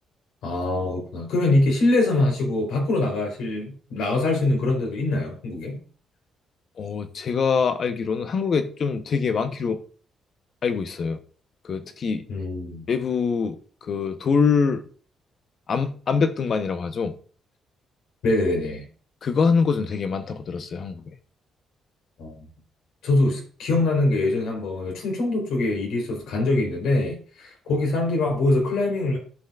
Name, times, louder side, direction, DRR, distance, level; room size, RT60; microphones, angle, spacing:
voice 1, 0.4-5.8 12.3-12.9 18.2-18.8 22.2-22.3 23.0-29.2, left 2 dB, 85° left, 3.8 m, -23 dB
voice 2, 6.8-9.8 10.6-11.2 11.6-12.2 12.9-14.8 15.7-17.1 19.2-21.1, left 5 dB, 50° left, 1.0 m, -24 dB
13.5 x 5.6 x 2.5 m
cardioid pair, 90°, 0 cm